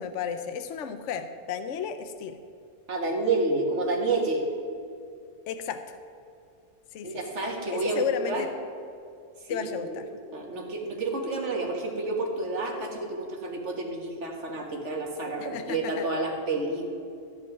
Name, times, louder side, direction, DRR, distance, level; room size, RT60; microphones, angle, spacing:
voice 1, 0.0-2.4 5.5-6.0 6.9-7.2 7.7-8.5 9.5-10.0 15.4-16.0, left 7 dB, 70° left, 9 dB, 1.0 m, -33 dB
voice 2, 2.9-4.4 7.0-8.5 9.4-16.9, right 2 dB, 65° right, 1 dB, 2.0 m, -30 dB
14.0 x 5.4 x 9.6 m, 2.5 s
omnidirectional pair, 1.3 m